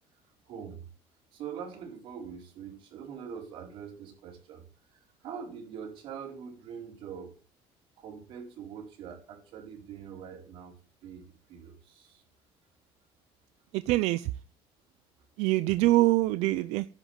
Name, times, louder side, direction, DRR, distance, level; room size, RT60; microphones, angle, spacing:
voice 1, 0.5-0.8 1.3-4.6 4.9-7.3 8.0-10.7 11.0-11.2 11.5-12.2, right 7 dB, 55° right, 0 dB, 4.6 m, -43 dB
voice 2, 13.7-14.3 15.4-16.9, right 18 dB, 90° right, 14 dB, 0.5 m, -24 dB
10.5 x 6.2 x 8.8 m, 0.38 s
cardioid pair, 175°, 11 cm